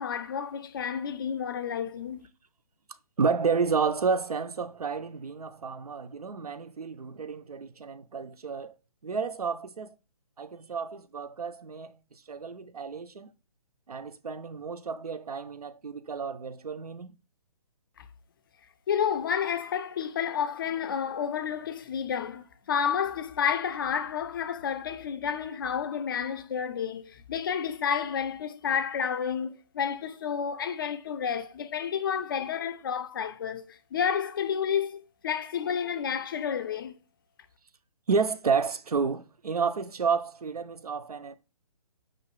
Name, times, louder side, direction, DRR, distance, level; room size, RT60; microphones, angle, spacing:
voice 1, 0.0-2.3 18.0-18.1 18.9-37.0, left 7 dB, 35° left, 0.4 m, -30 dB
voice 2, 3.2-8.8 9.0-9.9 10.4-13.3 13.9-17.1 38.1-41.4, right 5 dB, 85° right, 0.4 m, -31 dB
4.9 x 2.2 x 2.9 m
figure-of-eight pair, 135°, 19 cm